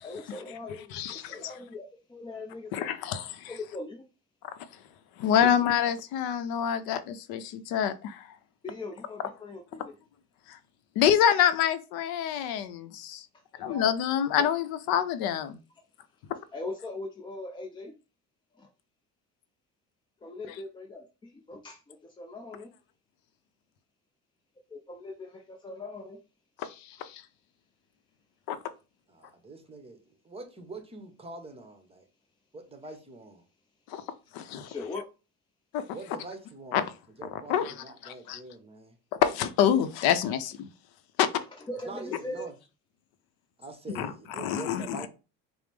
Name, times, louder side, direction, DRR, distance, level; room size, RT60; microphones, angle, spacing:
voice 1, 0.0-2.9 3.5-4.0 5.3-5.6 8.6-10.0 13.7-13.9 14.4-14.5 16.5-17.9 18.6-18.7 20.2-22.7 24.7-26.2 34.7-35.1 41.3-42.5, left 2 dB, 15° left, 0.3 m, -40 dB
voice 2, 0.9-1.4 2.7-3.5 5.2-8.2 10.5-10.6 11.0-13.3 13.6-15.6 26.6-27.2 28.5-28.6 33.9-34.0 34.3-34.7 35.7-35.8 36.7-36.8 37.5-37.7 38.0-38.4 39.2-40.7 41.2-41.3 44.0-45.0, left 9 dB, 70° left, 0.6 m, -27 dB
voice 3, 29.1-32.0 32.5-33.4 35.9-36.9 37.2-39.0 41.8-42.5 43.6-45.1, right 3 dB, 15° right, 0.8 m, -44 dB
4.9 x 2.0 x 3.3 m
cardioid pair, 110°, 38 cm